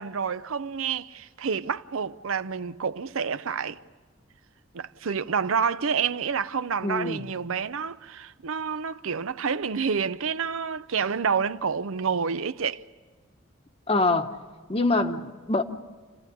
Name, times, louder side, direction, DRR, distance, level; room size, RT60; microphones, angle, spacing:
voice 1, 0.0-3.8 4.7-12.8, right 6 dB, 80° right, 0.6 m, -28 dB
voice 2, 6.8-7.2 13.9-14.3 14.7-15.6, left 2 dB, 25° left, 1.0 m, -24 dB
28.5 x 14.0 x 9.8 m
head